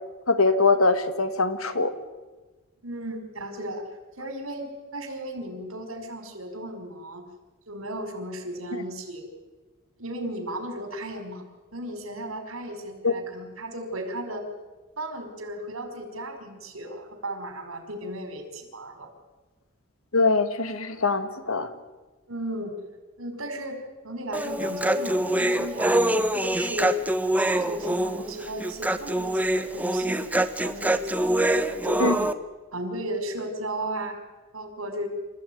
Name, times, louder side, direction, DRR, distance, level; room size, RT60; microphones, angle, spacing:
voice 1, 0.3-1.9 8.7-8.8 13.0-13.1 20.1-21.7 32.0-32.2, left 3 dB, 90° left, 10 dB, 2.1 m, -22 dB
voice 2, 2.8-3.8 4.2-7.2 7.7-9.3 10.0-11.4 11.7-14.4 15.0-19.1 22.3-22.7 23.2-26.0 26.4-27.0 27.4-31.3 31.6-32.2 32.7-34.2 34.5-35.1, right 1 dB, 80° right, 6 dB, 4.9 m, -35 dB
Human voice, 24.3-32.3, right 1 dB, 10° right, 1.0 m, -24 dB
27.5 x 15.0 x 9.4 m, 1.2 s
head